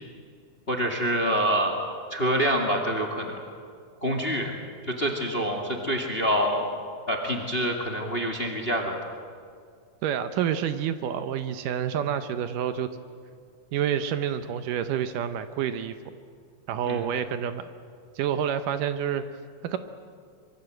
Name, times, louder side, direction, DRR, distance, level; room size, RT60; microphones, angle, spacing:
voice 1, 0.7-1.8 2.1-3.4 4.0-4.5 4.8-6.7 7.1-9.0 16.9-17.1, equal, 20° left, 2 dB, 1.7 m, -26 dB
voice 2, 10.0-12.9 13.7-16.0 16.7-17.7 18.2-19.2 19.6-19.8, right 9 dB, 75° right, 10 dB, 2.3 m, -28 dB
24.5 x 23.5 x 7.8 m, 2.2 s
omnidirectional pair, 4.1 m